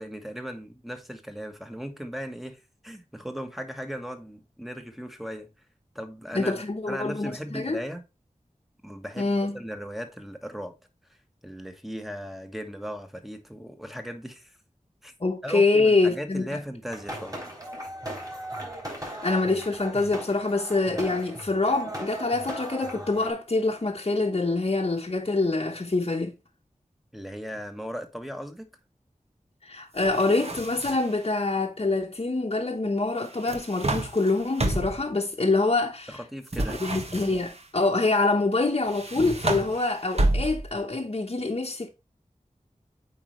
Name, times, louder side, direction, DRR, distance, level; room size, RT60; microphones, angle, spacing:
voice 1, 0.0-5.5 5.9-6.6 6.9-8.0 8.8-10.7 11.4-14.6 15.0-15.1 15.4-17.4 27.1-28.7 36.1-36.8, equal, ahead, 1.4 m, -37 dB
voice 2, 6.3-7.8 9.2-9.6 15.2-16.6 19.0-26.3 29.6-36.2 36.7-41.9, left 3 dB, 45° left, 1.0 m, -25 dB
sound 1, 16.9-23.3, right 1 dB, 25° right, 3.5 m, -38 dB
sound 2, 30.0-31.2 33.2-35.1 36.5-37.6 38.8-40.8, right 1 dB, 50° right, 1.4 m, -30 dB
8.3 x 4.8 x 3.2 m
wide cardioid pair, 60°, 13 cm